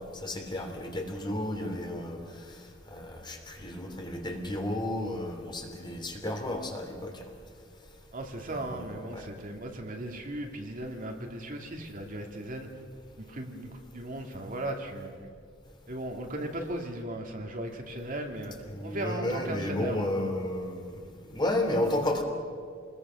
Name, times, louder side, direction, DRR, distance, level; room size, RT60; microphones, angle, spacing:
voice 1, 0.0-2.2 2.9-7.1 8.5-9.3 18.7-20.9 21.3-22.2, left 1 dB, 25° left, 3 dB, 2.9 m, -32 dB
voice 2, 8.1-12.7 13.2-15.3 15.9-18.5 18.8-20.1, right 1 dB, 45° right, 2 dB, 2.5 m, -37 dB
27.5 x 20.5 x 6.3 m, 2.2 s
head